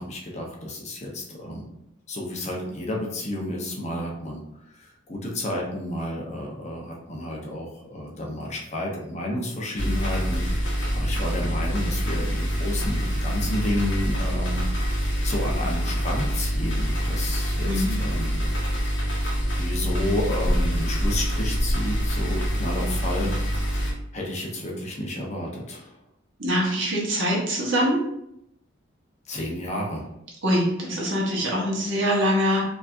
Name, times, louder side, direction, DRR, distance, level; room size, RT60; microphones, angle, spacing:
voice 1, 0.0-1.7 2.1-4.4 4.8-14.7 15.2-18.4 19.1-19.3 19.6-23.4 24.1-25.9 29.3-30.1, left 1 dB, 35° left, -2 dB, 0.7 m, -31 dB
sound 1, 9.8-23.9, equal, 60° left, 1.2 m, -25 dB
voice 2, 17.6-18.0 26.4-28.0 30.4-32.6, equal, 60° right, -3 dB, 1.1 m, -23 dB
4.6 x 2.8 x 2.5 m, 0.82 s
head